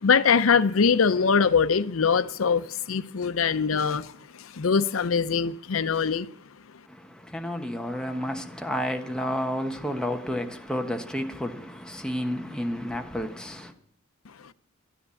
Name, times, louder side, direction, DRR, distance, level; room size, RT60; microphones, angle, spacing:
voice 1, 0.0-4.1 4.4-6.3, left 6 dB, 90° left, 0.6 m, -22 dB
voice 2, 6.9-13.7, equal, 5° left, 1.1 m, -31 dB
12.0 x 10.0 x 7.0 m
head